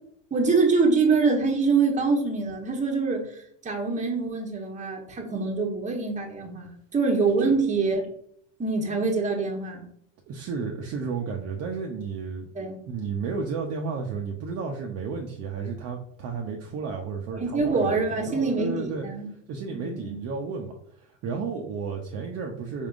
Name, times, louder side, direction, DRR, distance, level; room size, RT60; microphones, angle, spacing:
voice 1, 0.3-3.3 3.6-8.1 8.6-9.8 12.5-12.8 17.3-19.3 19.7-20.2, right 4 dB, 20° right, 1 dB, 1.0 m, -25 dB
voice 2, 10.3-12.4 12.9-19.1 19.5-20.7 21.0-22.9, right 5 dB, 45° right, 1 dB, 0.6 m, -32 dB
4.4 x 3.4 x 2.5 m, 0.66 s
supercardioid pair, 110°, 37 cm